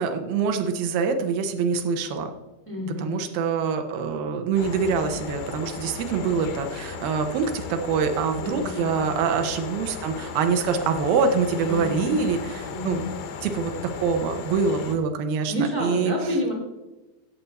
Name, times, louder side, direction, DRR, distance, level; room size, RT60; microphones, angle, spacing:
voice 1, 0.0-2.3 3.0-13.0 13.4-13.7 14.0-16.1, right 5 dB, 80° right, 6 dB, 2.1 m, -25 dB
voice 2, 2.6-3.2 8.4-9.0 11.6-12.2 12.7-13.0 15.5-16.5, left 1 dB, 5° left, -3 dB, 1.3 m, -29 dB
sound 1, 4.5-15.0, left 5 dB, 80° left, 1.8 m, -36 dB
17.0 x 7.0 x 4.2 m, 1.1 s
omnidirectional pair, 5.4 m